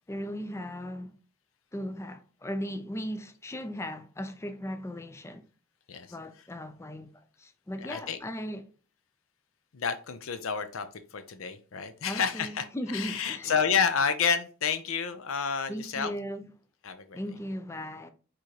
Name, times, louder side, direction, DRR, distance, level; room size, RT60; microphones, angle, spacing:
voice 1, 0.1-1.1 1.7-5.5 6.1-8.7 12.1-13.6 15.7-16.5 17.1-18.1, equal, 15° left, 0.4 m, -37 dB
voice 2, 7.8-8.2 9.7-16.1 16.8-17.2, left 6 dB, 80° left, 0.6 m, -30 dB
4.7 x 3.8 x 2.8 m
head